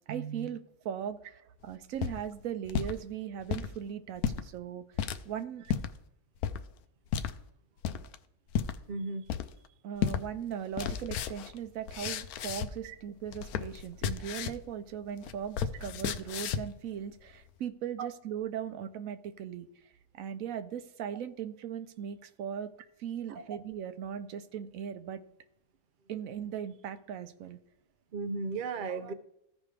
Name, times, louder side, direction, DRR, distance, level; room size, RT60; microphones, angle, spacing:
voice 1, 0.1-4.9 5.3-5.6 7.8-7.9 9.8-19.7 20.1-22.7 23.0-25.2 26.1-27.6, right 9 dB, 70° right, 11 dB, 1.0 m, -38 dB
sound 1, 1.7-3.0 3.4-3.7 4.2-4.4 5.0-5.2 5.7-5.9 6.4-6.6 7.1-7.3 7.8-8.2 8.5-8.8 9.3-9.7 10.0-10.2 10.5-12.9 13.2-14.7 15.0-16.8, left 8 dB, 85° left, 1.1 m, -33 dB
voice 2, 8.9-9.2 12.8-12.9 18.0-18.1 23.3-23.4 28.1-29.1, right 4 dB, 55° right, 9 dB, 0.6 m, -35 dB
15.0 x 5.3 x 3.2 m, 0.79 s
omnidirectional pair, 1.5 m